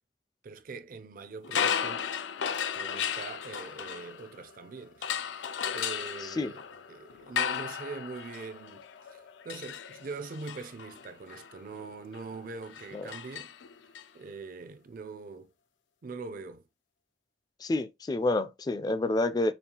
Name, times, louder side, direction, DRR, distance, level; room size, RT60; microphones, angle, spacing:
voice 1, 0.4-2.1 2.7-13.6 14.1-15.5 16.0-16.6, right 4 dB, 50° right, 0.4 m, -43 dB
sound 1, 1.4-4.5 5.0-14.0, left 7 dB, 85° left, 0.4 m, -35 dB
voice 2, 17.6-19.5, left 2 dB, 20° left, 0.3 m, -28 dB
5.2 x 2.4 x 2.8 m
head